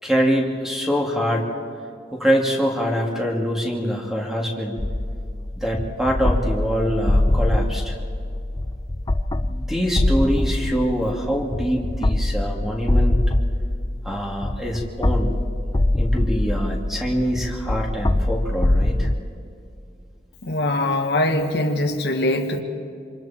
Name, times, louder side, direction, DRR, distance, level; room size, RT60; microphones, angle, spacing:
voice 1, 0.0-1.5 2.1-4.8 5.6-7.9 9.4-13.2 14.0-15.4 16.0-19.1, equal, ahead, -1 dB, 2.9 m, -24 dB
sound 1, 4.8-19.2, left 1 dB, 20° left, 0.5 m, -23 dB
voice 2, 20.4-22.6, left 1 dB, 70° left, 4 dB, 1.7 m, -22 dB
27.0 x 26.5 x 4.6 m, 2.4 s
head